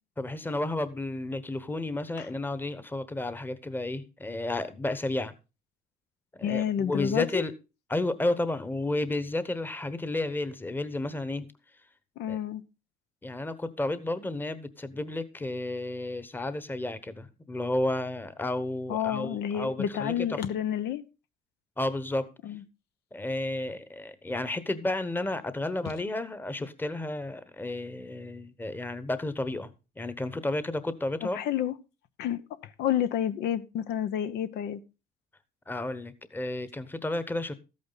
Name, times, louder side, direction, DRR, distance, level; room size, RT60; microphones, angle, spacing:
voice 1, 0.2-5.3 6.4-7.5 7.9-11.5 12.3-12.4 13.2-20.4 21.8-22.3 23.1-29.7 30.0-31.4 35.7-37.5, left 2 dB, 10° left, 1.1 m, -32 dB
voice 2, 6.4-7.4 12.2-12.6 18.9-21.0 22.5-22.6 31.3-31.7 32.2-34.8, left 10 dB, 75° left, 1.0 m, -29 dB
13.5 x 8.6 x 4.0 m
cardioid pair, 110°, 17 cm